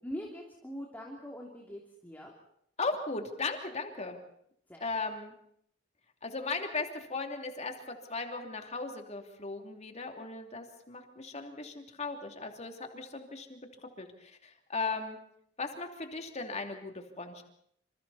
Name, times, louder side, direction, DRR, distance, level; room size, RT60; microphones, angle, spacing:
voice 1, 0.0-2.3 4.7-4.8, equal, 10° left, -1 dB, 3.0 m, -42 dB
voice 2, 2.8-4.2 4.8-5.3 6.2-13.6 14.0-15.2 15.6-17.4, left 3 dB, 35° left, 4 dB, 2.9 m, -37 dB
27.5 x 27.0 x 4.2 m, 0.70 s
head